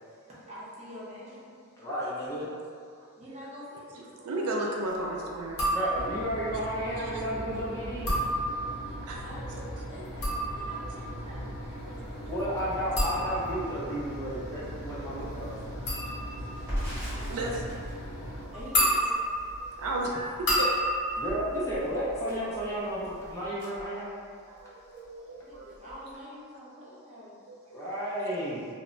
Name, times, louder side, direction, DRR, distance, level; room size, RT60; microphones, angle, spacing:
voice 1, 0.3-1.5 3.2-4.0 9.2-12.6 16.8-17.6 18.5-19.3 25.4-27.4, equal, 30° right, -9 dB, 0.7 m, -46 dB
voice 2, 1.8-2.5 5.6-8.2 12.3-15.6 21.2-24.1 27.7-28.7, equal, 15° left, -9 dB, 0.4 m, -32 dB
voice 3, 4.2-5.7 7.0-7.1 9.1-9.2 12.0-12.1 14.9-15.2 17.3-17.5 18.3-18.9 19.8-20.7 24.5-25.7 27.5-27.9, right 2 dB, 80° right, -1 dB, 0.4 m, -34 dB
sound 1, 5.5-6.3 7.9-8.9 9.9-22.6 22.9-23.5, equal, 65° left, 0.9 m, -31 dB
sound 2, 5.9-18.5, equal, 85° left, 0.5 m, -40 dB
Crackle, 16.5-24.6 24.9-25.1 25.4-26.1, equal, 10° right, 1.1 m, -41 dB
2.1 x 2.1 x 3.7 m, 2.2 s
head